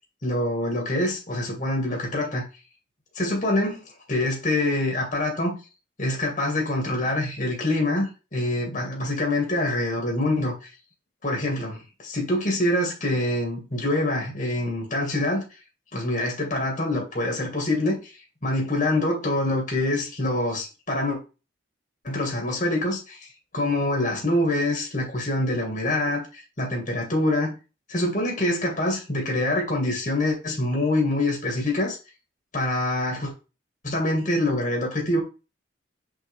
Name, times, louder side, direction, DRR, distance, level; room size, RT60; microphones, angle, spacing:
voice 1, 0.2-2.4 3.1-3.8 4.1-5.6 6.0-10.7 11.2-15.4 15.9-18.1 18.4-21.2 22.0-23.3 23.5-27.5 27.9-32.0 32.5-33.3 33.8-35.2, left 1 dB, 40° left, 2.3 m, -25 dB
6.6 x 4.8 x 3.7 m
head